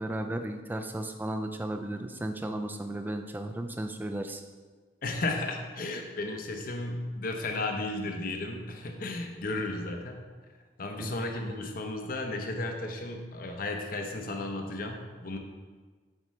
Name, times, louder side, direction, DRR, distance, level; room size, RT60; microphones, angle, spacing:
voice 1, 0.0-4.4 11.0-11.1, right 1 dB, 10° right, 6 dB, 0.3 m, -34 dB
voice 2, 5.0-10.2 10.8-15.4, left 2 dB, 50° left, 3 dB, 0.7 m, -34 dB
7.3 x 5.2 x 3.1 m, 1.4 s
head